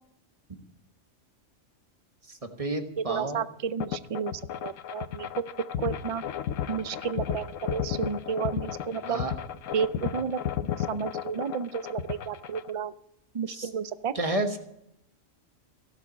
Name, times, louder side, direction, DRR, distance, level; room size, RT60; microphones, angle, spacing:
voice 1, 2.3-3.4 9.0-9.3 13.5-13.7 14.1-14.6, right 2 dB, 30° right, 5 dB, 1.4 m, -31 dB
voice 2, 3.0-4.3 4.6-5.3 5.8-6.2 6.7-9.2 9.7-10.4 10.8-12.9 13.3-14.1, right 6 dB, 60° right, 14 dB, 0.3 m, -32 dB
sound 1, 3.8-12.7, left 10 dB, 85° left, 1.1 m, -33 dB
16.5 x 7.4 x 8.3 m, 0.79 s
omnidirectional pair, 1.3 m